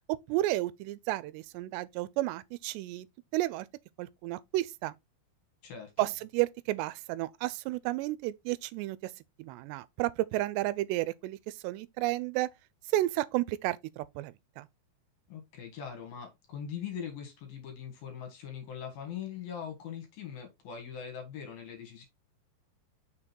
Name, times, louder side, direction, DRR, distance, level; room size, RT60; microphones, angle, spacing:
voice 1, 0.3-3.1 3.3-3.7 4.0-4.9 6.0-9.1 9.4-12.5 12.9-14.7, right 16 dB, 85° right, 2.7 m, -32 dB
voice 2, 5.6-6.1 15.3-22.1, left 8 dB, 65° left, 3.4 m, -41 dB
6.5 x 3.8 x 4.4 m
omnidirectional pair, 4.9 m